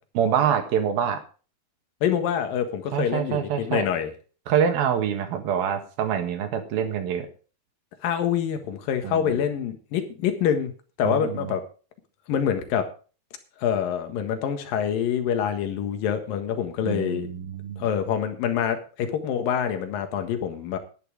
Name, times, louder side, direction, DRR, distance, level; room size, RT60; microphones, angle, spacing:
voice 1, 0.2-1.2 2.9-3.9 4.5-7.3 9.0-9.3 11.1-11.5 16.8-17.8, right 8 dB, 75° right, 6 dB, 3.5 m, -25 dB
voice 2, 2.0-4.1 8.0-10.7 11.0-11.6 12.3-12.9 13.6-17.3 17.8-20.8, left 8 dB, 70° left, 7 dB, 3.2 m, -26 dB
11.0 x 10.5 x 5.0 m, 0.37 s
omnidirectional pair, 4.4 m